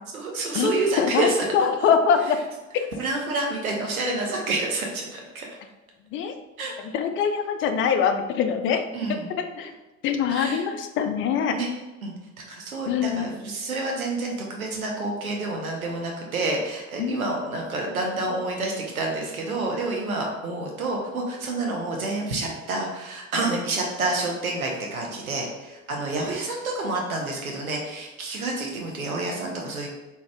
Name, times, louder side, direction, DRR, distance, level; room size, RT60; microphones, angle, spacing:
voice 1, 0.1-1.4 3.0-5.5 6.6-6.7 8.9-9.3 9.6-9.7 10.3-10.6 11.5-11.7 12.0-12.1 12.5-29.9, right 2 dB, 85° right, 0 dB, 0.7 m, -28 dB
voice 2, 1.5-2.4 2.7-2.8 6.1-6.3 6.9-8.8 9.4-9.7 10.0-11.6 12.9-13.3 17.0-17.2, left 7 dB, 30° left, 7 dB, 0.4 m, -23 dB
4.2 x 2.3 x 3.4 m, 1.1 s
figure-of-eight pair, 65°, 41 cm